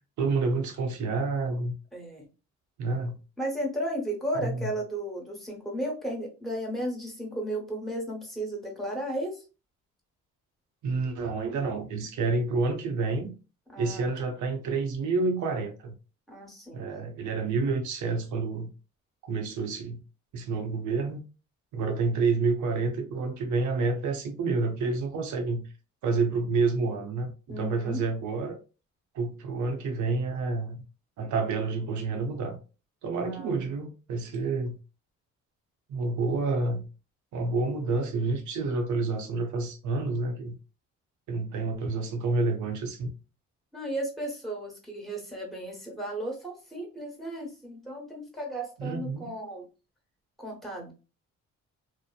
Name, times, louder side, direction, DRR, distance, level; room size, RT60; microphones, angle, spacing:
voice 1, 0.2-1.7 2.8-3.2 4.3-4.7 10.8-13.3 13.8-15.9 16.7-18.7 19.2-20.0 20.3-21.2 21.7-25.7 26.0-28.6 29.1-30.8 31.2-32.6 33.0-34.8 35.9-36.8 37.3-40.5 41.3-43.1 48.8-49.3, right 3 dB, 75° right, 0.7 m, -29 dB
voice 2, 1.9-2.3 3.4-9.4 13.7-14.3 16.3-16.8 27.5-28.0 33.2-33.6 43.7-49.7 50.4-50.9, right 1 dB, ahead, 1.1 m, -34 dB
2.8 x 2.1 x 2.3 m
cardioid pair, 90°, 30 cm